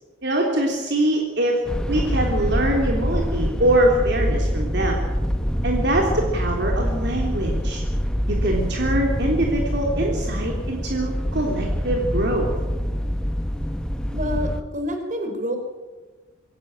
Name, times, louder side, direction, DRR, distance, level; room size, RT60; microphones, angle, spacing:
voice 1, 0.2-1.6 1.9-5.0 5.6-7.8 8.3-12.5, right 1 dB, 55° right, 0 dB, 3.4 m, -23 dB
sound 1, 1.7-14.6, equal, 5° left, 1.2 m, -25 dB
voice 2, 14.1-15.6, equal, 40° right, 5 dB, 4.6 m, -28 dB
26.0 x 16.0 x 9.1 m, 1.3 s
head